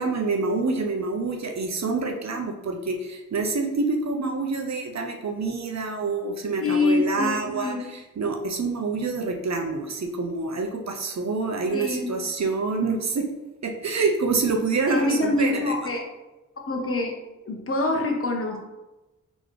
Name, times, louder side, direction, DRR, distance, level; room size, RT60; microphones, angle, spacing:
voice 1, 0.0-7.8 8.2-13.3 13.6-15.7, right 3 dB, 55° right, 3 dB, 0.6 m, -27 dB
voice 2, 6.6-7.8 11.7-12.1 14.9-16.0 16.7-17.2 17.4-18.6, left 2 dB, 40° left, 1 dB, 0.9 m, -25 dB
3.9 x 3.0 x 3.1 m, 1.0 s
cardioid pair, 50°, 33 cm